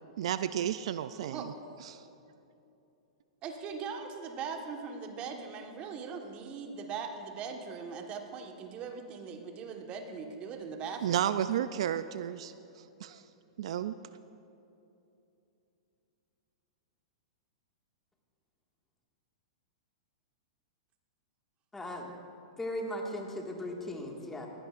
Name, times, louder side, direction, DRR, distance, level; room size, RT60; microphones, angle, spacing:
voice 1, 0.2-1.5 1.8-2.0 11.0-13.2 13.6-13.9, right 10 dB, 70° right, 13 dB, 0.4 m, -32 dB
voice 2, 1.1-1.5 3.4-11.2, right 5 dB, 35° right, 4 dB, 1.4 m, -40 dB
voice 3, 21.7-22.1 22.6-24.5, left 1 dB, 10° left, 0 dB, 1.9 m, -37 dB
19.5 x 15.5 x 2.5 m, 2.8 s
hypercardioid pair, 115°, 3 cm